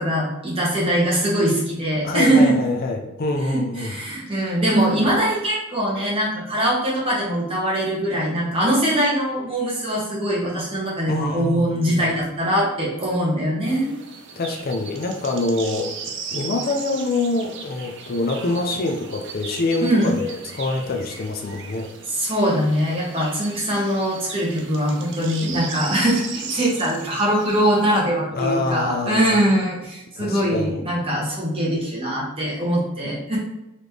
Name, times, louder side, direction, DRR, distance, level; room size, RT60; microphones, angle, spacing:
voice 1, 0.0-2.6 3.5-13.9 19.8-20.1 22.1-33.4, right 1 dB, 25° right, -6 dB, 1.5 m, -22 dB
voice 2, 2.0-4.0 11.1-12.1 14.4-15.9 16.3-21.9 28.3-29.6 30.2-30.8, left 2 dB, 45° left, 3 dB, 0.5 m, -25 dB
sound 1, 13.7-28.0, right 5 dB, 60° right, 0.6 m, -37 dB
4.0 x 3.1 x 3.3 m, 0.93 s
head